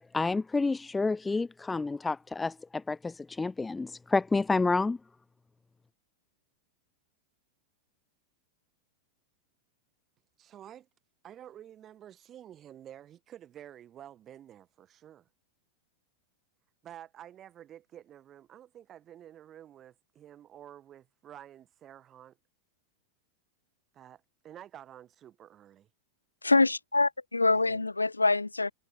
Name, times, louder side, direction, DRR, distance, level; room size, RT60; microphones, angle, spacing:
voice 1, 0.1-5.0, left 3 dB, 10° left, 0.5 m, -29 dB
voice 2, 10.4-10.9 11.2-15.3 16.8-22.4 23.9-25.9 27.5-27.9, right 11 dB, 30° right, 6.6 m, -50 dB
voice 3, 26.4-28.7, left 3 dB, 90° left, 0.4 m, -25 dB
figure-of-eight pair, 95°, 0 cm